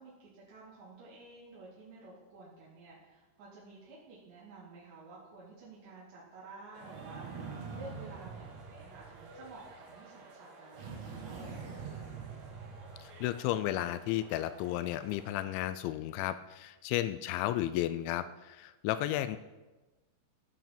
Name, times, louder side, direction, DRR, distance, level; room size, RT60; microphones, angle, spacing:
voice 1, 0.0-11.8, right 3 dB, 70° right, -7 dB, 4.8 m, -52 dB
sound 1, 6.7-9.8 10.7-13.5, right 5 dB, 50° right, 2.3 m, -45 dB
sound 2, 6.7-15.4, right 3 dB, 85° right, 5.0 m, -54 dB
voice 2, 13.0-19.4, left 13 dB, 85° left, 13 dB, 2.8 m, -33 dB
16.5 x 9.4 x 5.9 m, 1.2 s
omnidirectional pair, 5.5 m